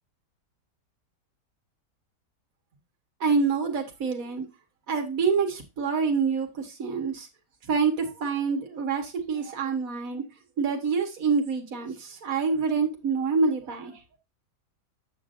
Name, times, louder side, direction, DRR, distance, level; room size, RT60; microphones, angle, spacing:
voice 1, 3.2-4.5 4.9-7.3 7.7-10.2 10.6-14.0, right 5 dB, 55° right, 1.7 m, -26 dB
8.2 x 5.9 x 2.6 m
omnidirectional pair, 1.8 m